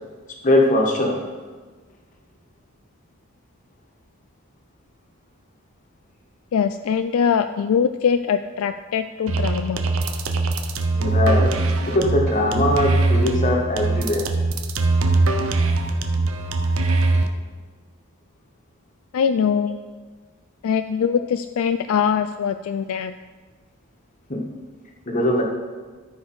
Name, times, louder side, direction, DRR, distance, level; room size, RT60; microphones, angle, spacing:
voice 1, 0.4-1.2 10.9-11.6 11.8-14.3 24.3-24.4 25.1-25.4, left 1 dB, 35° left, 0 dB, 1.5 m, -21 dB
voice 2, 6.5-9.8 19.1-19.8 20.6-23.1, left 7 dB, 70° left, 9 dB, 0.3 m, -22 dB
sound 1, 9.3-17.3, right 2 dB, 70° right, 0.8 m, -21 dB
13.5 x 4.9 x 4.8 m, 1.4 s
head